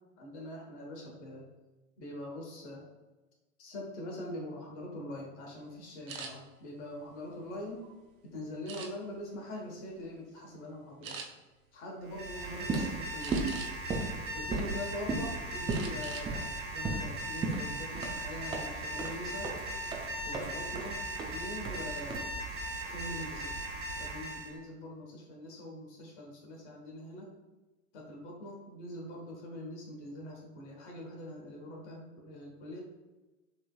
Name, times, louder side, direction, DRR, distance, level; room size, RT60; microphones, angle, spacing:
voice 1, 0.2-1.5 2.0-2.9 3.6-7.8 8.2-11.2 11.7-13.5 14.3-19.5 20.2-21.0 21.3-22.3 22.8-23.6 24.0-27.3 27.9-32.8, left 1 dB, 55° left, 0 dB, 1.4 m, -43 dB
sound 1, 6.1-6.3 6.9-7.9 8.7-9.2 9.8-10.0 10.4-10.5 11.0-11.3 13.2-13.9 14.4-15.2 15.7-16.3 16.6-16.8 17.2-17.6, right 5 dB, 70° right, 0.8 m, -44 dB
Alarm, 12.0-24.5, right 1 dB, 30° right, 1.2 m, -39 dB
sound 2, 12.6-22.7, right 3 dB, 10° right, 0.5 m, -36 dB
6.2 x 3.0 x 2.3 m, 1.1 s
figure-of-eight pair, 90°, 42 cm